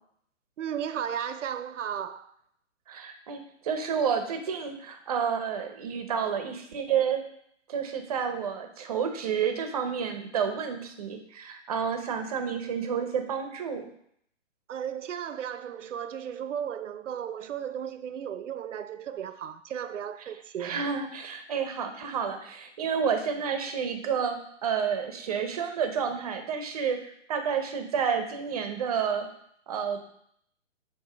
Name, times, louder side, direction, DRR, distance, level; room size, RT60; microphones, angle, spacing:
voice 1, 0.6-2.3 14.7-20.8, right 9 dB, 75° right, 0.6 m, -35 dB
voice 2, 2.9-7.2 7.7-13.9 20.6-27.0 27.3-29.3 29.7-30.0, right 7 dB, 30° right, 0.6 m, -30 dB
7.5 x 2.7 x 5.5 m
hypercardioid pair, 155°, 37 cm